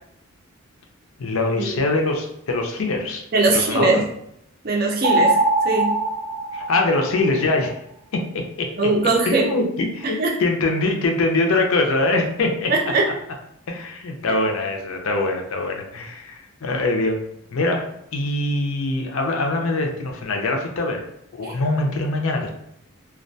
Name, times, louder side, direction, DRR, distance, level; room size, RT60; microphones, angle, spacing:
voice 1, 1.2-3.2 3.5-4.0 6.5-7.7 8.1-8.7 9.2-12.7 13.7-17.2 17.5-21.1 21.3-22.5, left 2 dB, 70° left, 3 dB, 0.5 m, -23 dB
voice 2, 3.3-4.0 4.6-6.0 8.8-9.5 10.0-10.4 12.7-13.1 14.3-14.4 21.4-21.6, right 3 dB, 45° right, 0 dB, 0.4 m, -21 dB
sound 1, 5.0-7.5, right 2 dB, 90° right, 0.6 m, -21 dB
2.3 x 2.1 x 2.6 m, 0.76 s
head